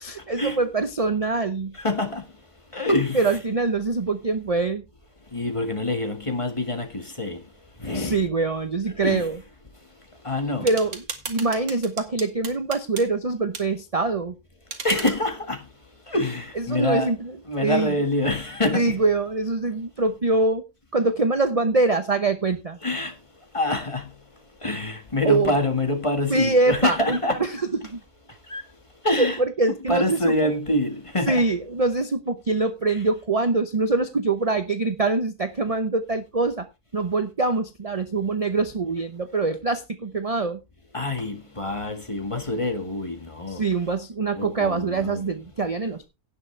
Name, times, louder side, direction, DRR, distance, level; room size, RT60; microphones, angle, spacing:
voice 1, 0.0-1.7 3.1-4.8 7.9-9.4 10.6-14.3 16.5-17.9 18.7-20.6 20.9-22.8 25.2-25.5 26.3-28.0 29.2-30.5 31.3-36.7 36.9-40.6 43.5-46.1, right 3 dB, 30° right, 0.7 m, -24 dB
voice 2, 1.8-2.2 2.7-3.4 5.3-7.4 7.8-8.2 9.0-9.3 10.3-10.7 14.8-15.6 16.1-17.1 17.5-19.0 22.8-23.1 23.5-24.0 24.6-27.4 28.5-28.6 29.0-29.4 29.9-31.4 40.9-43.6 44.3-45.2, left 2 dB, 20° left, 1.7 m, -26 dB
sound 1, 10.7-13.1 13.5-13.7 14.7-15.2, right 4 dB, 50° right, 2.0 m, -35 dB
17.0 x 6.7 x 3.3 m
omnidirectional pair, 1.6 m